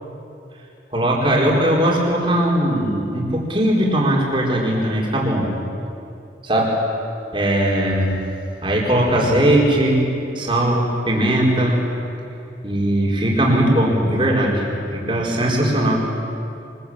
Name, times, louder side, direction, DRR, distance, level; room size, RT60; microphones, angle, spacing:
voice 1, 0.9-5.5 6.4-6.8 7.3-8.1 8.6-10.0 10.3-11.8 12.6-14.7 14.9-16.0, right 1 dB, 25° right, -2 dB, 4.7 m, -19 dB
25.0 x 20.5 x 8.9 m, 2.6 s
head